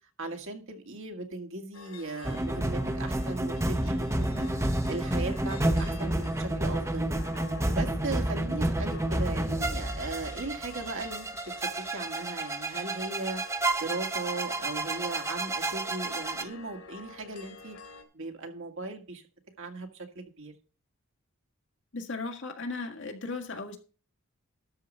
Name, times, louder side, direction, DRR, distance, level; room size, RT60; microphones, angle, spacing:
voice 1, 0.2-4.5 4.9-7.3 7.7-11.3 11.6-13.4 13.8-17.8 18.1-19.2 19.6-20.5, right 3 dB, 65° right, 2.0 m, -38 dB
sound 1, 1.7-18.0, left 4 dB, 80° left, 2.3 m, -49 dB
sound 2, 2.2-16.4, right 1 dB, 15° right, 0.8 m, -30 dB
voice 2, 21.9-23.8, left 3 dB, 65° left, 2.0 m, -36 dB
12.5 x 4.8 x 6.6 m
head